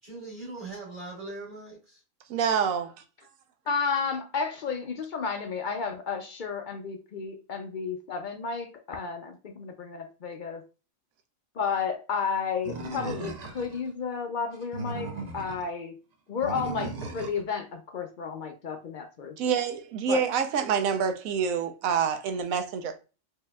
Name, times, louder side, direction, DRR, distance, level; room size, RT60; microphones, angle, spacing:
voice 1, 0.0-2.0, right 2 dB, 35° right, 1.9 m, -40 dB
voice 2, 2.3-2.9 19.4-22.9, right 7 dB, 85° right, 1.1 m, -27 dB
voice 3, 3.7-10.6 11.6-16.0 16.3-19.5 20.1-20.2, left 5 dB, 60° left, 0.5 m, -32 dB
Animal, 12.6-13.8 14.5-15.6 16.4-17.4, right 3 dB, 55° right, 0.4 m, -36 dB
4.6 x 2.8 x 2.2 m
omnidirectional pair, 1.4 m